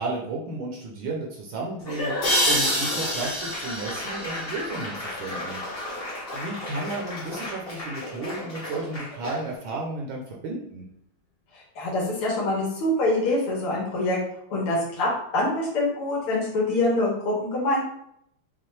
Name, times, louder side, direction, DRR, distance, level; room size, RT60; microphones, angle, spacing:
voice 1, 0.0-5.6 6.3-10.8, right 2 dB, 75° right, -1 dB, 1.4 m, -33 dB
Laughter / Applause / Crowd, 1.8-9.6, left 1 dB, 40° left, 0.9 m, -34 dB
sound 1, 2.2-5.6, equal, 55° left, 2.0 m, -27 dB
voice 2, 11.8-14.2 14.5-17.8, left 2 dB, 80° left, -4 dB, 2.0 m, -25 dB
5.6 x 2.2 x 3.2 m, 0.73 s
omnidirectional pair, 2.4 m